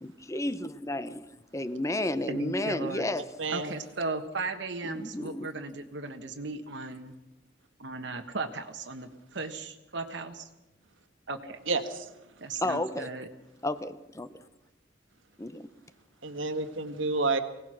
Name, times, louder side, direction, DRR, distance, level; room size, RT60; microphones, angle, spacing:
voice 1, 0.0-3.3 4.8-5.5 12.6-13.1 13.6-14.4 15.4-15.7, left 1 dB, 15° left, 0.8 m, -32 dB
voice 2, 2.3-3.1 3.5-7.2 7.8-10.5 11.3-11.6 12.4-13.3, right 3 dB, 60° right, 1.2 m, -36 dB
voice 3, 3.4-3.7 11.7-12.1 16.2-17.4, right 3 dB, 75° right, 1.6 m, -29 dB
24.0 x 18.0 x 6.3 m
head